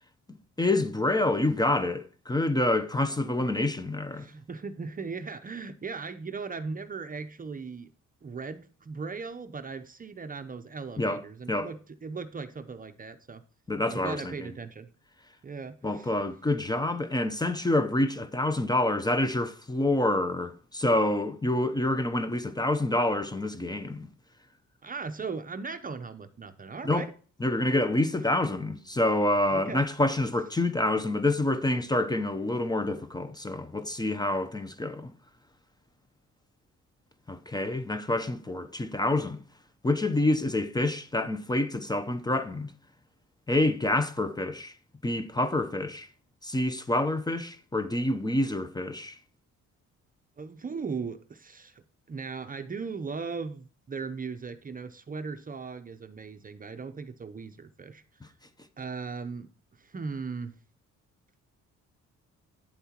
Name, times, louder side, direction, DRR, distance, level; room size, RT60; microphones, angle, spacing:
voice 1, 0.6-4.3 11.0-11.2 11.5-11.7 13.7-14.5 15.8-24.1 26.8-27.0 27.4-35.1 37.3-39.4 39.8-42.7 43.5-44.7 45.0-46.1 46.4-49.2, left 2 dB, 15° left, 0.7 m, -27 dB
voice 2, 3.0-3.5 4.2-7.9 8.2-13.4 13.9-14.9 15.4-16.1 24.8-27.1 28.1-28.2 29.5-29.8 50.4-58.3 58.8-59.5 59.8-60.5, right 4 dB, 30° right, 0.7 m, -38 dB
9.4 x 7.8 x 2.9 m
cardioid pair, 90°, 30 cm